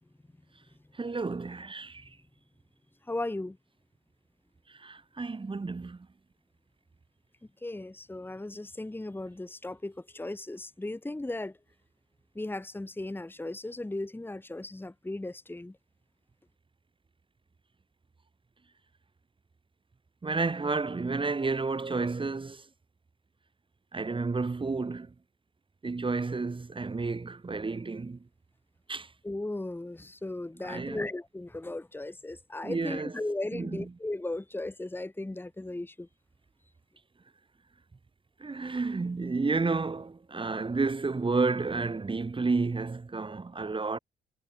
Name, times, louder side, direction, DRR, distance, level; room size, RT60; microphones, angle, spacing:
voice 1, 0.9-2.2 4.7-6.1 20.2-22.7 23.9-25.1 25.8-28.2 28.9-29.1 30.6-31.0 32.6-33.1 33.5-33.8 38.4-44.0, right 3 dB, 25° right, 3.4 m, -31 dB
voice 2, 3.1-3.6 7.6-11.6 12.4-15.8 29.2-36.1, left 2 dB, 10° left, 1.9 m, -36 dB
cardioid pair, 90°, 20 cm